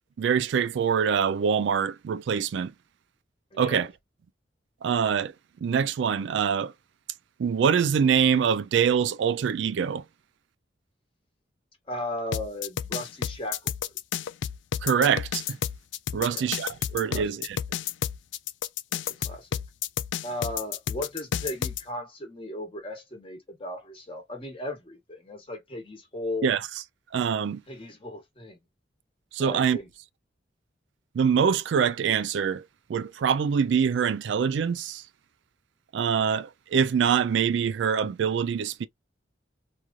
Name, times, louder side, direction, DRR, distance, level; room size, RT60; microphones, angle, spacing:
voice 1, 0.2-2.7 3.6-3.9 4.8-5.3 5.6-6.7 7.4-10.0 14.8-15.6 16.1-17.6 26.4-26.6 27.1-27.6 29.3-29.8 31.1-32.6 32.9-35.0 35.9-38.9, right 7 dB, 75° right, 0.3 m, -24 dB
voice 2, 3.5-3.9 11.9-13.7 16.2-16.5 17.1-17.3 18.9-19.6 20.2-26.5 27.7-28.6 29.4-29.9, left 1 dB, 30° left, 1.1 m, -36 dB
sound 1, 12.3-21.8, left 9 dB, 80° left, 0.3 m, -31 dB
3.0 x 2.4 x 2.3 m
head